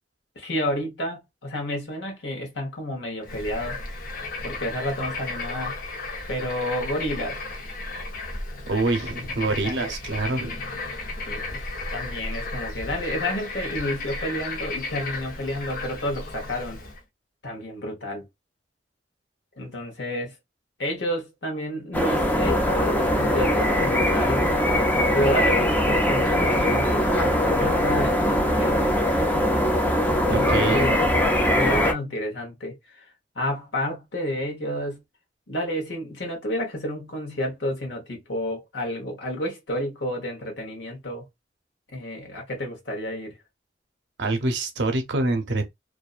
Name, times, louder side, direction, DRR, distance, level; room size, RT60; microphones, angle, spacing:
voice 1, 0.4-3.8 4.4-5.8 6.3-7.4 9.6-9.9 10.4-10.6 11.3-11.7 11.9-16.8 17.4-18.3 19.6-20.3 20.8-24.4 25.1-28.9 30.3-31.2 31.5-33.1 33.3-35.0 35.5-41.3 41.9-43.3, left 1 dB, 75° left, 1.0 m, -30 dB
Bird / Frog, 3.2-17.0, left 2 dB, 50° left, 0.7 m, -34 dB
voice 2, 8.7-10.6 30.2-31.0 44.2-45.7, right 2 dB, 80° right, 0.7 m, -26 dB
sound 1, 21.9-31.9, equal, 10° left, 0.5 m, -21 dB
2.5 x 2.2 x 2.4 m
head